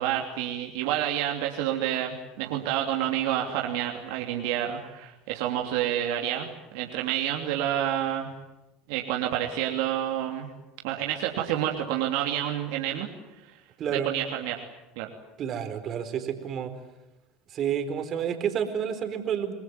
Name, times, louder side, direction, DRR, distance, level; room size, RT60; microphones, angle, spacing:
voice 1, 0.0-8.3 8.9-10.5 10.8-13.1 13.9-14.6 15.0-15.1, right 11 dB, 70° right, 1 dB, 2.9 m, -29 dB
voice 2, 13.8-14.1 15.4-16.7 17.5-19.5, right 8 dB, 45° right, 8 dB, 4.2 m, -29 dB
27.5 x 20.0 x 9.5 m, 0.99 s
hypercardioid pair, 85°, 0 cm